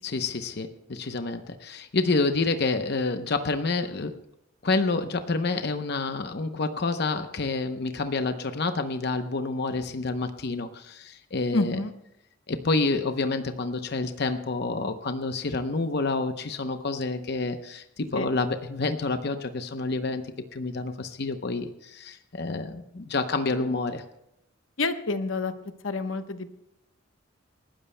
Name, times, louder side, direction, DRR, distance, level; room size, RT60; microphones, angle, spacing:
voice 1, 0.0-4.2 4.6-11.8 12.5-20.3 20.5-24.0, left 3 dB, 55° left, 8 dB, 0.8 m, -28 dB
voice 2, 11.5-11.9 18.1-18.3 24.8-25.5 25.8-26.6, left 3 dB, 90° left, 8 dB, 1.0 m, -28 dB
29.0 x 12.5 x 2.2 m, 0.84 s
head